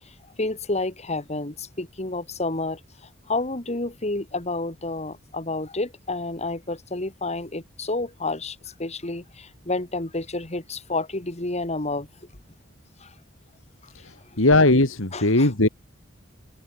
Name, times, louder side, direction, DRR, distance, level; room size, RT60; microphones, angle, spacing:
voice 1, 0.4-2.8 3.3-12.1 13.0-13.1 15.1-15.5, left 2 dB, 35° left, 2.6 m, -30 dB
voice 2, 14.4-15.7, left 2 dB, 80° left, 2.7 m, -18 dB
head